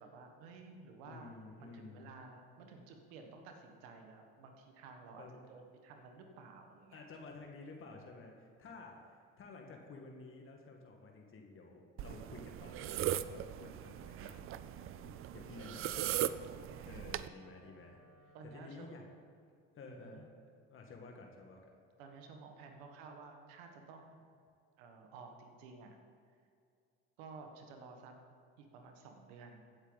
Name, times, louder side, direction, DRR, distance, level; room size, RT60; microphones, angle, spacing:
voice 1, 0.0-7.0 18.3-18.9 19.9-20.2 22.0-24.2 24.8-25.9 27.2-28.1 28.6-29.6, right 4 dB, 90° right, 4 dB, 1.5 m, -53 dB
voice 2, 1.0-2.1 5.2-5.3 6.9-16.3 16.8-19.0 19.7-20.3 20.7-21.7, left 3 dB, 45° left, 1 dB, 1.7 m, -52 dB
sound 1, 12.0-17.3, right 12 dB, 45° right, 0.5 m, -39 dB
Wind instrument woodwind instrument, 14.5-19.0, right 3 dB, 65° right, 3.1 m, -62 dB
16.0 x 8.1 x 4.0 m, 2.3 s
supercardioid pair, 95°, 30 cm